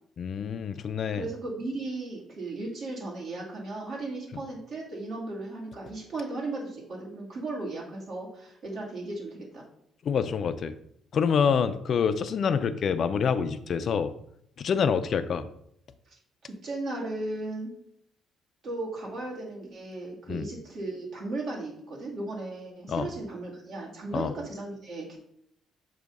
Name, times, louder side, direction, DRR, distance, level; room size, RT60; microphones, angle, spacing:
voice 1, 0.2-1.2 10.0-10.7 11.1-14.1 14.6-15.5 20.3-20.5 22.9-23.1 24.1-24.3, left 6 dB, 45° left, 11 dB, 0.3 m, -26 dB
voice 2, 1.2-9.6 16.1-16.2 16.4-17.7 18.6-25.2, right 2 dB, 55° right, -4 dB, 2.3 m, -36 dB
6.9 x 2.7 x 5.2 m, 0.72 s
cardioid pair, 150°, 0 cm